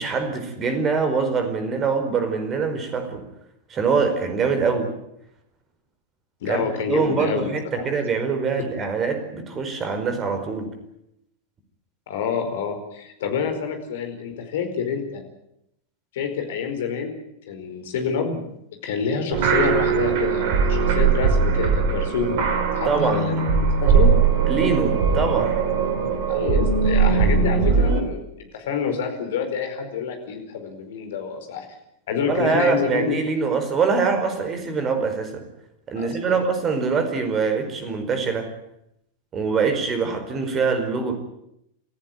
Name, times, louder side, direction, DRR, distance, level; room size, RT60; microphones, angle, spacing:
voice 1, 0.0-3.2 3.7-4.9 6.4-10.7 22.8-23.5 24.5-25.6 32.3-35.4 35.9-38.5 39.3-41.2, right 5 dB, 25° right, 8 dB, 4.8 m, -24 dB
voice 2, 6.4-7.5 7.8-7.9 12.1-15.2 16.1-17.2 17.5-18.4 18.8-22.4 22.7-24.1 26.3-31.7 32.1-33.2 36.0-36.4, left 6 dB, 55° left, 6 dB, 4.8 m, -27 dB
sound 1, 19.3-28.0, right 5 dB, 50° right, 3.7 m, -20 dB
27.0 x 14.5 x 9.4 m, 0.78 s
figure-of-eight pair, 90°, 0 cm